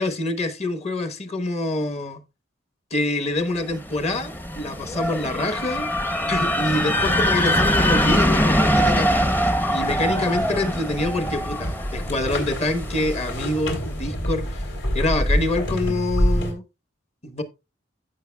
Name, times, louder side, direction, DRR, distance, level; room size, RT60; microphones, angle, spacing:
voice 1, 0.0-2.2 2.9-5.9 6.3-9.3 9.7-14.6 14.9-16.6 17.2-17.4, left 2 dB, 35° left, 1.1 m, -26 dB
sound 1, 3.7-13.5, equal, 10° left, 0.7 m, -23 dB
sound 2, 9.8-16.5, equal, 65° left, 3.0 m, -27 dB
15.5 x 5.9 x 2.3 m
head